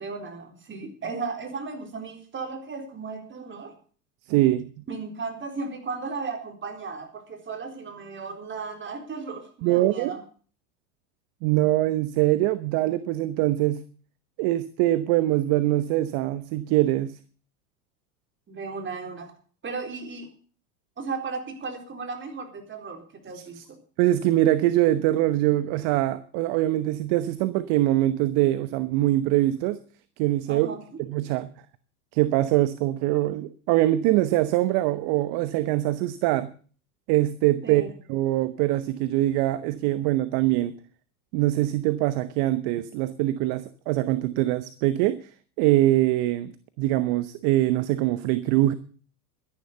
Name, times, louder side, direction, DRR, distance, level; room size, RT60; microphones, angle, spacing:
voice 1, 0.0-3.7 4.9-10.2 18.5-19.3 19.6-20.3 21.0-23.6 30.5-30.8 37.6-37.9, right 4 dB, 25° right, 5 dB, 4.1 m, -35 dB
voice 2, 4.3-4.7 9.6-10.1 11.4-13.8 14.4-17.2 23.3-23.6 24.0-29.8 30.2-30.7 31.1-31.5 32.1-36.5 37.1-37.8 38.1-40.7 41.3-45.2 45.6-48.7, right 15 dB, 55° right, 13 dB, 1.1 m, -23 dB
12.5 x 10.5 x 6.8 m, 0.42 s
hypercardioid pair, 100°, 44 cm